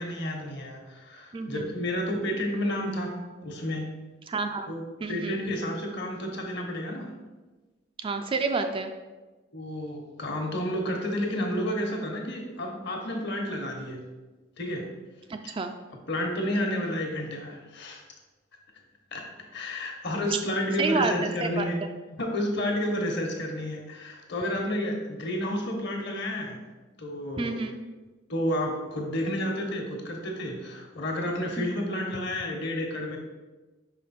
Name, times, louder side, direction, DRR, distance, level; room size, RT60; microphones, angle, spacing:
voice 1, 0.0-3.9 4.7-4.8 5.1-7.1 9.5-14.0 14.6-14.9 15.4-15.5 16.1-18.0 19.1-19.3 19.5-21.8 22.1-26.6 27.0-27.6 28.3-33.2, left 1 dB, 55° left, 2 dB, 1.2 m, -31 dB
voice 2, 1.3-1.7 4.3-4.7 5.0-5.4 8.0-8.9 15.5-15.7 20.8-21.7 27.4-27.8 31.6-31.7, right 4 dB, 25° right, 6 dB, 0.3 m, -29 dB
5.5 x 5.0 x 4.3 m, 1.2 s
head